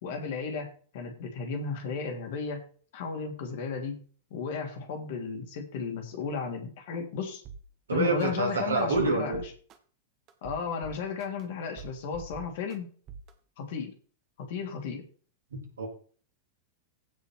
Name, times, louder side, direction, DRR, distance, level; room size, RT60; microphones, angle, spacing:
voice 1, 0.0-2.6 2.9-4.0 4.3-7.4 7.9-9.4 10.4-12.9 13.6-13.9 14.4-15.0, left 5 dB, 55° left, 4 dB, 3.1 m, -34 dB
sound 1, 7.4-7.6 8.2-8.3 8.8-9.8 10.3-11.4 11.8-12.8 13.1-13.3, right 6 dB, 35° right, 1.6 m, -44 dB
voice 2, 7.9-9.4 15.5-15.9, right 3 dB, 70° right, 2 dB, 3.4 m, -27 dB
15.5 x 5.5 x 4.7 m, 0.42 s
figure-of-eight pair, 90°, 0 cm